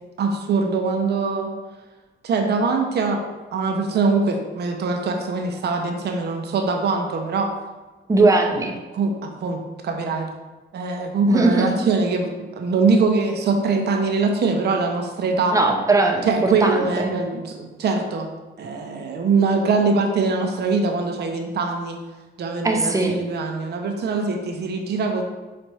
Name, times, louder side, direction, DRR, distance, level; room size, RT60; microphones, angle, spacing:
voice 1, 0.2-1.5 2.2-3.2 3.5-7.5 8.9-10.3 10.7-15.6 16.3-18.3 18.6-22.0 22.4-25.2, right 4 dB, 55° right, 3 dB, 0.7 m, -22 dB
voice 2, 8.1-8.8 11.3-11.8 15.5-17.1 22.6-23.2, right 2 dB, 15° right, 3 dB, 0.6 m, -19 dB
4.2 x 2.5 x 4.6 m, 1.2 s
cardioid pair, 90°, 20 cm